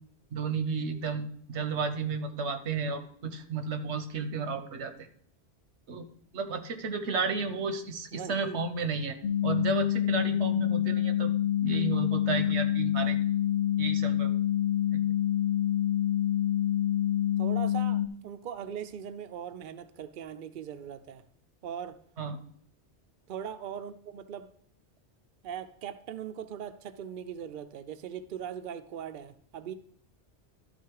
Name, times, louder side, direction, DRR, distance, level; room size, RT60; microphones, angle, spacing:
voice 1, 0.3-4.9 5.9-6.1 6.3-9.2 9.4-11.3 11.6-13.2 13.8-14.3 22.2-22.4, right 4 dB, 85° right, 8 dB, 1.2 m, -32 dB
voice 2, 8.1-8.6 17.4-21.2 21.6-22.0 23.3-24.5 25.4-29.7, right 8 dB, 60° right, 10 dB, 0.7 m, -40 dB
sound 1, 9.2-18.1, left 11 dB, 65° left, 0.7 m, -27 dB
12.0 x 4.1 x 4.7 m, 0.62 s
omnidirectional pair, 1.1 m